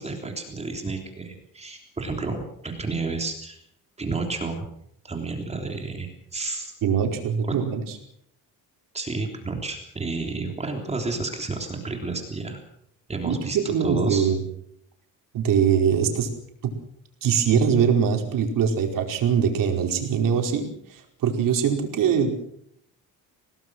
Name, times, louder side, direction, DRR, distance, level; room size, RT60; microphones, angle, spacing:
voice 1, 0.0-3.6 4.0-4.7 5.0-6.7 7.4-7.6 8.9-12.6 13.1-14.3, right 3 dB, 20° right, 3 dB, 3.4 m, -31 dB
voice 2, 6.8-8.0 13.2-14.4 15.3-16.3 16.6-16.7 17.2-22.3, right 7 dB, 70° right, 3 dB, 5.0 m, -22 dB
27.0 x 18.5 x 6.3 m, 0.71 s
cardioid pair, 165°, 34 cm